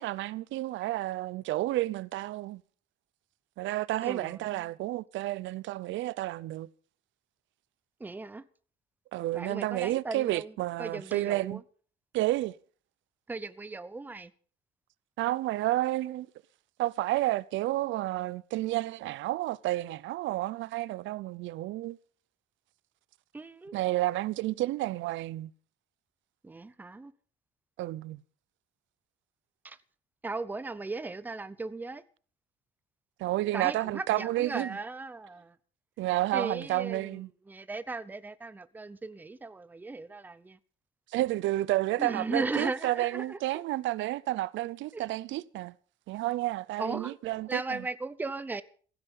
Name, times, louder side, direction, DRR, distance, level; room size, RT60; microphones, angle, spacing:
voice 1, 0.0-2.6 3.6-6.7 9.1-11.6 12.1-12.5 15.2-16.3 16.8-22.0 23.7-25.5 27.8-28.2 33.2-34.8 36.0-37.3 41.1-45.7 46.1-47.8, right 16 dB, 85° right, 0.7 m, -31 dB
voice 2, 4.0-4.7 8.0-8.4 9.3-11.6 13.3-14.3 23.3-23.7 26.4-27.1 29.6-29.8 30.2-32.0 33.5-35.6 36.3-40.6 42.0-43.4 44.9-45.0 46.8-47.2 47.5-48.6, right 3 dB, 10° right, 0.7 m, -37 dB
16.0 x 15.5 x 5.5 m
cardioid pair, 180°, 19 cm